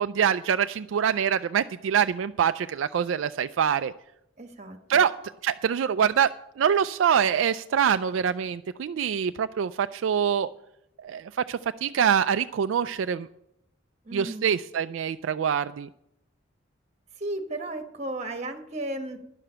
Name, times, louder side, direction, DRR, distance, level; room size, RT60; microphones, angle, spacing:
voice 1, 0.0-3.9 4.9-5.1 5.4-6.3 6.6-10.5 11.0-13.3 14.1-15.9, right 8 dB, 70° right, 10 dB, 0.3 m, -25 dB
voice 2, 4.4-5.3 14.0-14.5 17.2-19.2, right 1 dB, 35° right, 5 dB, 1.3 m, -35 dB
10.5 x 6.7 x 8.9 m, 0.80 s
head